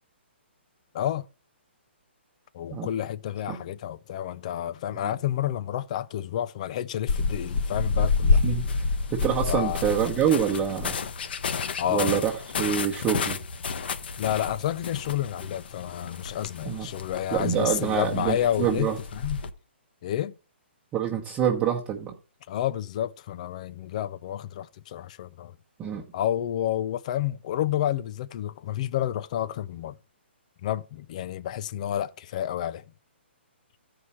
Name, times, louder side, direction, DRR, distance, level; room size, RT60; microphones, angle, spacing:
voice 1, 0.9-1.3 2.5-8.4 9.5-9.9 11.8-12.2 14.2-19.4 20.0-20.3 22.5-25.5 26.1-30.0 30.6-32.8, left 11 dB, 35° left, 0.6 m, -30 dB
sound 1, 7.1-19.5, left 4 dB, 55° left, 1.0 m, -29 dB
voice 2, 8.2-11.0 11.9-12.3 12.6-13.4 16.6-16.9 17.3-19.0 20.9-22.1 25.8-26.0, right 9 dB, 15° right, 1.2 m, -26 dB
13.5 x 4.8 x 5.6 m
hypercardioid pair, 160°, 6 cm